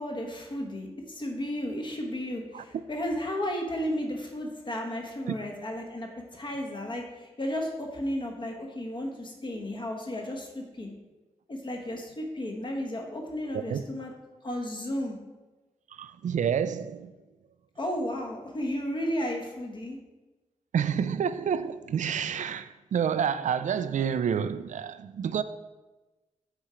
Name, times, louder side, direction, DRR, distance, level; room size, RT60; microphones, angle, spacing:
voice 1, 0.0-10.9 11.5-14.1 14.4-15.2 17.8-20.0, equal, 40° left, 1.2 m, -33 dB
voice 2, 15.9-17.1 20.7-25.4, right 7 dB, 80° right, 0.4 m, -29 dB
7.4 x 4.3 x 5.0 m
wide cardioid pair, 160°, 12 cm